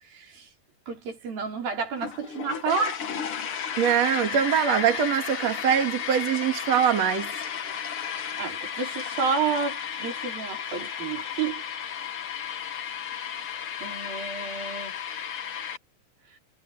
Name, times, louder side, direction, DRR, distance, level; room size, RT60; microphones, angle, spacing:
voice 1, 0.1-0.5 0.9-3.0 8.4-11.6 13.8-14.9, right 5 dB, 70° right, 6.2 m, -30 dB
sound 1, 2.0-15.8, left 7 dB, 50° left, 1.8 m, -33 dB
voice 2, 3.8-7.3, right 9 dB, 50° right, 3.3 m, -23 dB
omnidirectional pair, 4.3 m